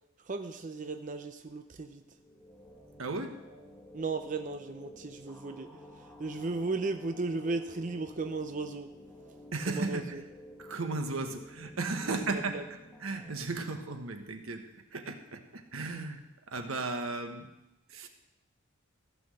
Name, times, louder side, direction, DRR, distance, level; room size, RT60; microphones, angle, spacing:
voice 1, 0.2-2.0 3.9-5.7 6.0-8.9 9.7-10.2 12.0-12.6, right 3 dB, 40° right, 7 dB, 0.6 m, -35 dB
sound 1, 1.9-13.4, left 1 dB, 10° left, 1.2 m, -52 dB
voice 2, 3.0-3.5 9.5-10.1 10.6-12.7 13.0-17.5 17.9-18.1, right 3 dB, 85° right, 6 dB, 1.3 m, -35 dB
15.0 x 6.2 x 7.7 m, 0.98 s
head